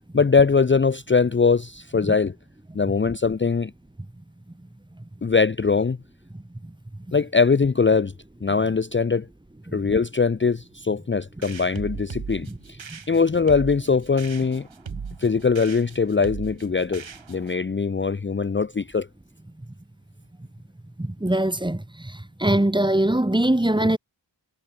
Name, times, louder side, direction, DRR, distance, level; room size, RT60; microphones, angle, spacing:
voice 1, 0.1-2.3 2.7-3.7 5.2-6.0 7.1-8.1 8.4-9.3 9.7-12.8 13.1-14.7 15.2-19.1, left 5 dB, 25° left, 0.6 m, -21 dB
sound 1, 11.4-17.6, right 6 dB, 85° right, 2.7 m, -38 dB
voice 2, 21.0-24.0, right 1 dB, 10° right, 1.1 m, -22 dB
wide cardioid pair, 65°, 45 cm